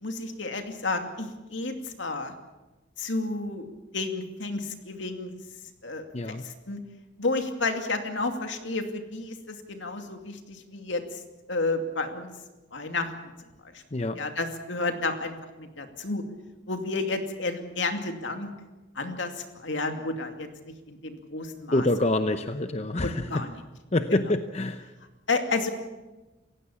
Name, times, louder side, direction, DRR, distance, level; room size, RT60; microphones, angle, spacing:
voice 1, 0.0-2.3 3.0-3.7 3.9-5.3 5.8-6.8 7.2-11.2 11.5-12.3 12.7-13.1 13.7-16.2 16.7-18.5 18.9-21.9 23.0-23.6 24.1-24.2 25.3-25.7, left 3 dB, 70° left, 5 dB, 2.5 m, -31 dB
voice 2, 21.7-23.3 23.9-24.8, left 2 dB, 35° left, 9 dB, 0.7 m, -26 dB
28.0 x 16.0 x 7.1 m, 1.1 s
head